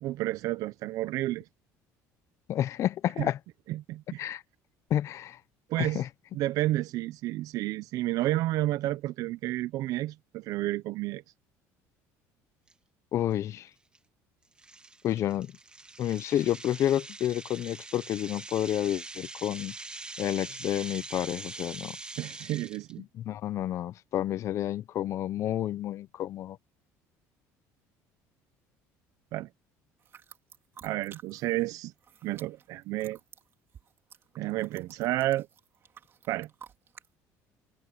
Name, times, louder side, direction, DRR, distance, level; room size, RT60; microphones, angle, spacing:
voice 1, 0.0-1.5 3.2-3.3 3.7-4.3 5.7-6.0 6.3-11.2 22.2-23.0 29.3-29.5 30.8-31.9 32.2-33.2 34.4-35.5 36.3-36.5, right 16 dB, 65° right, 0.6 m, -31 dB
voice 2, 2.5-3.4 4.2-4.4 4.9-5.4 5.8-6.1 13.1-13.7 15.0-15.5 16.0-19.7 20.2-22.0 23.0-26.6, left 12 dB, 50° left, 0.7 m, -30 dB
sound 1, 12.7-12.8 13.3-13.5 13.9-14.0 14.6-22.9, right 3 dB, 15° right, 2.2 m, -43 dB
sound 2, 30.0-31.7 31.9-37.1, right 8 dB, 40° right, 4.1 m, -53 dB
cardioid pair, 130°, 6 cm